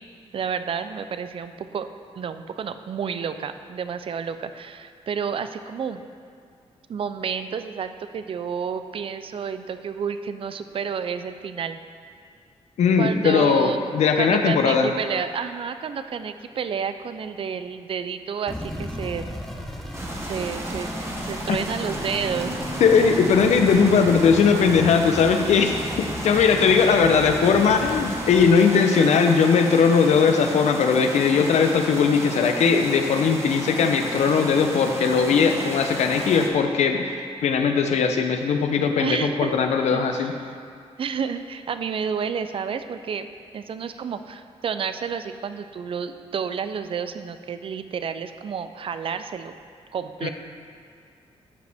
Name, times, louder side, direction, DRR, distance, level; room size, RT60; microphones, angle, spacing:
voice 1, 0.3-1.9 2.2-6.0 6.9-11.8 13.0-19.3 20.2-20.9 21.2-22.5 39.0-39.6 39.9-40.4 41.0-43.3 43.5-49.6 49.9-50.3, right 6 dB, 50° right, 10 dB, 0.4 m, -30 dB
voice 2, 12.8-14.9 22.8-40.3 50.2-50.3, left 5 dB, 85° left, 5 dB, 0.6 m, -19 dB
sound 1, 18.5-28.5, equal, 5° left, 1.0 m, -35 dB
sound 2, 19.9-36.5, right 1 dB, 20° right, 1.1 m, -34 dB
sound 3, 21.0-25.7, right 2 dB, 75° right, 1.5 m, -38 dB
12.5 x 5.0 x 3.5 m, 2.3 s
cardioid pair, 95°, 11 cm